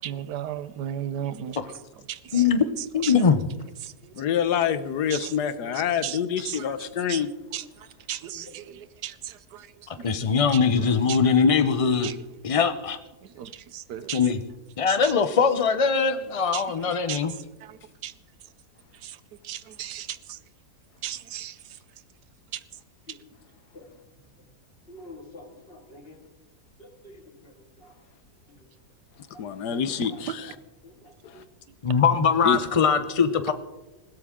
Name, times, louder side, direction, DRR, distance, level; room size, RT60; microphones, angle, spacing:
voice 1, 0.0-1.6 2.1-2.4 2.8-3.1 3.8-4.1 5.1-5.3 5.7-6.2 6.4-7.2 7.5-11.2 12.0-12.2 13.2-14.2 14.9-15.1 16.5-17.2 17.6-18.1 19.0-19.2 19.4-20.4 21.0-21.6 22.5-22.6 23.1-23.2 30.3-30.4, right 10 dB, 85° right, 1.4 m, -36 dB
voice 2, 2.3-2.7 2.9-3.4 9.9-12.1 12.4-13.0 14.1-14.4 14.8-17.3 31.8-33.5, left 6 dB, 60° left, 0.3 m, -21 dB
voice 3, 4.2-7.3 29.4-30.5 31.2-31.3 32.4-32.6, left 8 dB, 80° left, 1.4 m, -26 dB
voice 4, 24.9-26.2 26.8-27.9 28.5-28.6 29.3-30.5 30.8-31.5, left 1 dB, 35° left, 2.4 m, -48 dB
20.0 x 16.5 x 3.7 m
omnidirectional pair, 1.7 m